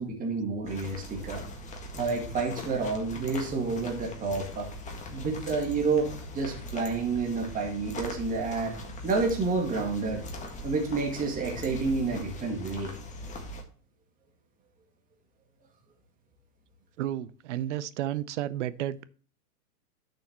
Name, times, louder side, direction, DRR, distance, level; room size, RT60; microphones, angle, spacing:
voice 1, 0.0-1.5 2.0-4.7 5.1-6.1 6.3-8.7 9.0-10.2 10.6-12.9, right 4 dB, 15° right, 2.1 m, -29 dB
sound 1, 0.6-13.6, left 1 dB, 15° left, 1.7 m, -41 dB
voice 2, 17.0-19.0, right 12 dB, 50° right, 0.7 m, -32 dB
11.5 x 6.4 x 3.0 m
hypercardioid pair, 125°, 47 cm